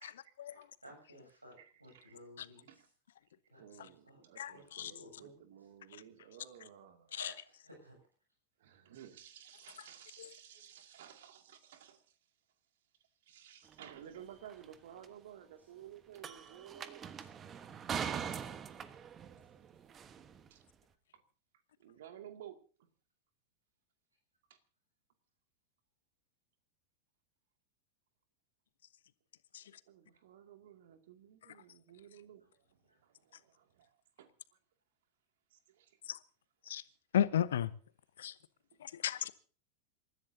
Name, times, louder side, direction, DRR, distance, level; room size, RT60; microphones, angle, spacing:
voice 1, 0.0-0.7 1.6-2.1 2.7-2.9 3.6-7.1 8.6-12.2 13.2-17.0 20.5-20.6 21.1-21.2 21.8-22.6 24.5-24.6 29.9-34.3 35.5-36.0, right 10 dB, 55° right, 2.3 m, -55 dB
voice 2, 0.8-2.7 3.5-4.2 4.5-5.4 7.1-8.0 32.9-33.0, equal, 85° right, 7.6 m, -55 dB
voice 3, 4.4-4.9 7.2-7.3 29.5-29.6 36.1-36.2 36.7-36.8 37.1-37.7 38.2-38.3 38.8-39.3, left 10 dB, 60° left, 1.0 m, -34 dB
sound 1, 13.7-13.8 14.5-14.7 15.0-15.1 16.1-20.5, right 7 dB, 25° right, 1.3 m, -42 dB
28.0 x 15.0 x 2.8 m
figure-of-eight pair, 90°, 0 cm